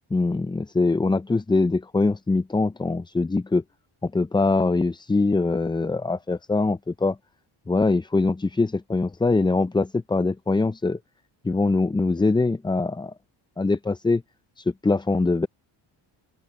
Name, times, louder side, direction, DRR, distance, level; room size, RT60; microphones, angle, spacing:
voice 1, 0.1-3.6 4.0-7.2 7.7-11.0 11.4-13.1 13.6-14.2 14.6-15.5, left 3 dB, 10° left, 0.4 m, -23 dB
open air
cardioid pair, 65°, 48 cm